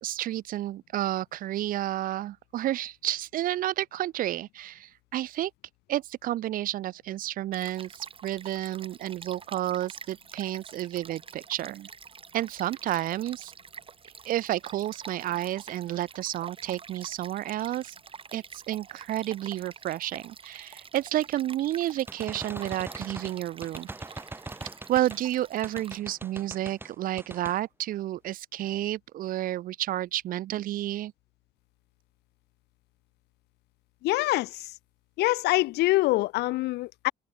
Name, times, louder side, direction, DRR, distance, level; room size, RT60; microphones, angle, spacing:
voice 1, 0.0-5.5 5.9-11.9 12.3-13.5 14.3-17.9 18.3-23.9 24.9-31.1, right 13 dB, 55° right, 0.5 m, -31 dB
Stream, 7.5-26.0, right 6 dB, 30° right, 3.5 m, -47 dB
sound 1, 22.1-25.2 25.6-26.9 27.2-27.6, right 2 dB, 15° right, 5.4 m, -41 dB
voice 2, 34.0-34.7 35.2-37.1, left 19 dB, 80° left, 0.5 m, -25 dB
cardioid pair, 110°, 17 cm